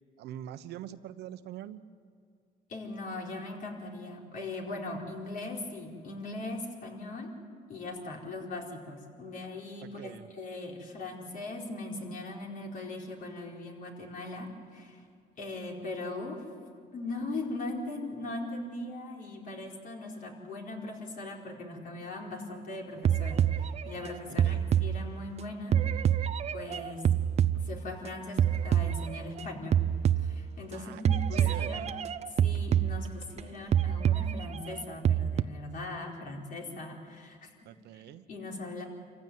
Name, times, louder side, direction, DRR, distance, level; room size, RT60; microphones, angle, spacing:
voice 1, 0.2-1.8 9.8-10.3 24.3-24.7 30.7-31.0 31.3-31.9 37.6-38.2, right 11 dB, 80° right, 11 dB, 1.1 m, -44 dB
voice 2, 2.7-7.3 7.7-15.1 15.4-16.4 16.9-25.8 26.5-27.0 27.5-29.9 30.2-31.9 32.3-37.5 37.9-38.0 38.3-38.8, left 2 dB, 55° left, 0 dB, 4.6 m, -40 dB
sound 1, 23.0-25.4 25.7-28.1 28.4-29.5 29.7-30.7 31.0-33.4 33.7-35.4, right 9 dB, 40° right, 0.6 m, -27 dB
26.5 x 15.5 x 9.5 m, 2.1 s
cardioid pair, 110°, 17 cm